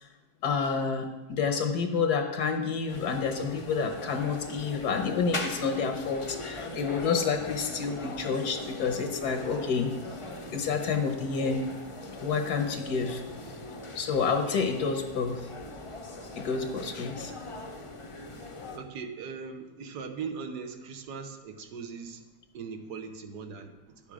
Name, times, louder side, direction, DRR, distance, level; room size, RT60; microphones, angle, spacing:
voice 1, 0.4-9.9 10.5-11.6 12.2-13.2 13.9-15.4 16.4-17.3, left 5 dB, 75° left, 4 dB, 1.4 m, -29 dB
sound 1, 2.9-18.8, left 2 dB, 35° left, 0.5 m, -40 dB
voice 2, 18.7-22.2 22.5-24.1, right 5 dB, 80° right, 5 dB, 1.5 m, -40 dB
11.0 x 7.3 x 4.9 m, 1.1 s
omnidirectional pair, 1.8 m